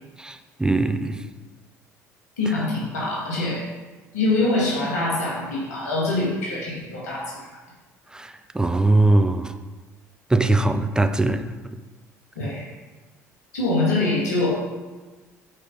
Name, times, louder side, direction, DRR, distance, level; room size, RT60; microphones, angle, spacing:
voice 1, 0.6-1.2 8.5-9.5 10.3-11.4, right 2 dB, 10° right, 0.7 m, -20 dB
voice 2, 2.4-3.6 4.1-7.5 12.4-12.6 13.5-14.5, left 2 dB, 80° left, 1.8 m, -24 dB
7.8 x 5.0 x 5.4 m
hypercardioid pair, 60°, 9 cm